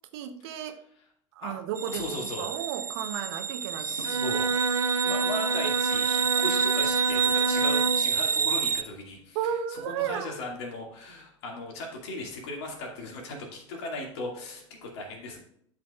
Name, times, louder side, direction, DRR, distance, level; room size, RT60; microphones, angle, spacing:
voice 1, 0.1-0.8 1.3-4.2 4.5-4.6 9.3-10.3, right 9 dB, 55° right, 8 dB, 1.0 m, -34 dB
sound 1, 1.8-8.8, right 7 dB, 20° right, 0.4 m, -28 dB
voice 2, 1.9-2.5 3.8-4.5 5.0-15.4, left 2 dB, 60° left, 1 dB, 2.4 m, -37 dB
Bowed string instrument, 4.0-8.2, right 3 dB, 85° right, 0.7 m, -28 dB
12.5 x 5.1 x 2.5 m, 0.68 s
figure-of-eight pair, 80°, 16 cm